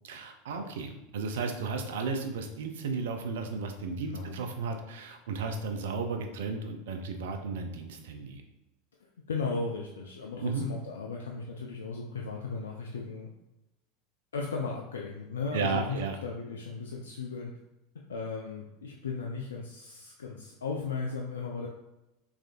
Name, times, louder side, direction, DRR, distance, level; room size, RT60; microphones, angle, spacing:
voice 1, 0.0-8.4 10.4-10.7 15.5-16.2, right 4 dB, 70° right, 5 dB, 0.4 m, -34 dB
voice 2, 4.1-4.4 9.3-13.3 14.3-17.5 18.1-21.7, left 4 dB, 80° left, -1 dB, 0.4 m, -36 dB
3.5 x 3.1 x 2.4 m, 0.94 s
figure-of-eight pair, 80°, 0 cm